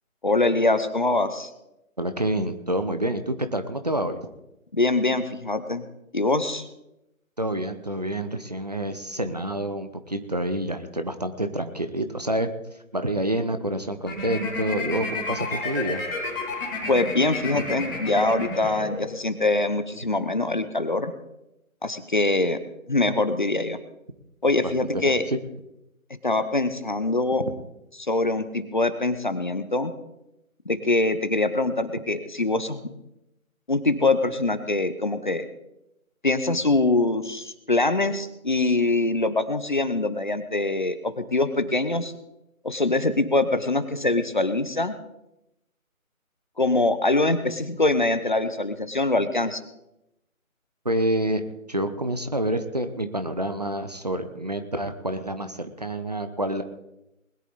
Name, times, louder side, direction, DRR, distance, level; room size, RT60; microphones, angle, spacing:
voice 1, 0.2-1.5 4.7-5.8 6.1-6.6 16.9-21.1 21.8-22.6 22.9-23.8 24.4-25.2 26.2-27.4 28.0-29.9 30.7-32.8 33.7-35.5 36.2-42.1 42.6-44.9 46.6-49.6, left 2 dB, 35° left, 11 dB, 0.9 m, -23 dB
voice 2, 2.0-4.2 7.4-12.5 12.9-16.0 24.8-25.4 50.8-51.4 51.7-56.6, right 1 dB, 30° right, 8 dB, 0.8 m, -28 dB
sound 1, 14.0-19.3, left 3 dB, 15° left, 2.1 m, -31 dB
20.5 x 11.0 x 4.1 m, 0.88 s
figure-of-eight pair, 155°, 42 cm